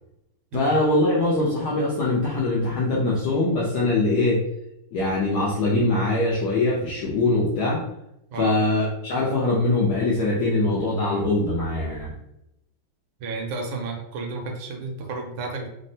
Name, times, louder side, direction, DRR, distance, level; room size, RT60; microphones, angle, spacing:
voice 1, 0.5-4.4 4.9-7.8 8.4-12.1, left 2 dB, 75° left, -5 dB, 0.9 m, -22 dB
voice 2, 13.2-15.7, right 3 dB, 80° right, 2 dB, 1.4 m, -32 dB
3.5 x 2.1 x 2.6 m, 0.82 s
omnidirectional pair, 2.3 m